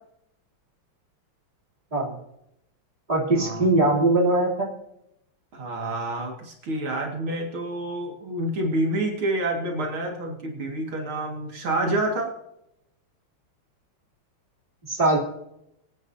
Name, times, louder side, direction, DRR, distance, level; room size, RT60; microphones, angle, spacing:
voice 1, 3.1-4.7 14.9-15.2, right 2 dB, 20° right, -3 dB, 3.2 m, -21 dB
voice 2, 5.5-12.3, right 1 dB, 70° right, 1 dB, 2.8 m, -28 dB
24.0 x 9.7 x 2.8 m, 0.81 s
omnidirectional pair, 2.4 m